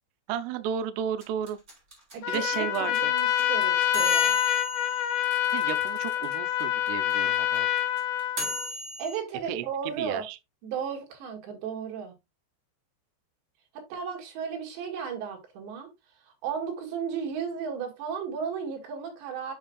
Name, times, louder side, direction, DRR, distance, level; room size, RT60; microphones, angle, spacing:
voice 1, 0.3-1.6 2.3-3.1 5.5-7.7 9.5-10.4, right 9 dB, 90° right, 2.3 m, -33 dB
sound 1, 1.2-6.3 6.6-6.7 6.9-9.2, equal, 15° right, 3.0 m, -35 dB
voice 2, 2.1-4.4 8.7-10.2 10.6-12.1 13.7-15.9 16.3-19.5, right 6 dB, 70° right, 4.0 m, -34 dB
Trumpet, 2.2-8.7, left 12 dB, 80° left, 2.7 m, -26 dB
7.9 x 6.8 x 2.3 m
omnidirectional pair, 5.5 m